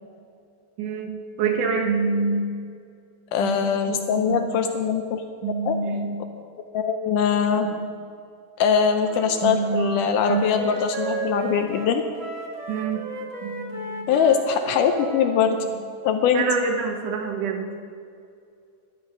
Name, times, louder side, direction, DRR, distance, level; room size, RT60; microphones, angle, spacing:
voice 1, 0.8-1.1 1.4-2.6 3.4-4.5 5.4-6.3 7.6-7.9 9.4-10.6 11.4-11.7 12.7-13.0 13.4-14.1 15.5-15.6 16.3-17.7, right 4 dB, 70° right, 3 dB, 2.4 m, -27 dB
voice 2, 3.3-5.2 5.6-5.8 6.7-7.7 8.6-12.0 14.1-15.6 16.0-16.5, left 7 dB, 75° left, 6 dB, 2.0 m, -22 dB
Wind instrument woodwind instrument, 9.0-15.4, right 3 dB, 55° right, 1.5 m, -35 dB
12.0 x 10.5 x 5.3 m, 2.3 s
omnidirectional pair, 4.0 m